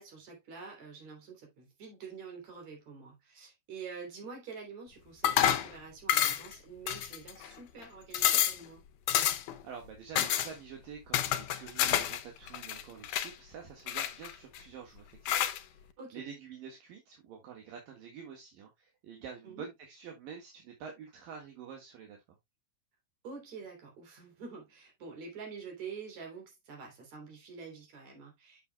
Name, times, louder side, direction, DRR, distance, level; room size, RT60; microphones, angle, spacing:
voice 1, 0.0-8.8 16.0-16.2 19.4-19.7 23.2-28.6, right 5 dB, 50° right, 4.4 m, -47 dB
sound 1, 5.2-5.7 6.1-6.5 6.9-7.5 7.8-7.9 8.1-8.6 9.1-9.6 10.2-10.5 11.1-12.2 12.5-13.3 13.9-14.6 15.3-15.6, left 11 dB, 75° left, 2.1 m, -28 dB
voice 2, 9.6-15.8 16.1-22.4, right 7 dB, 70° right, 3.3 m, -48 dB
9.7 x 6.9 x 2.3 m
omnidirectional pair, 4.3 m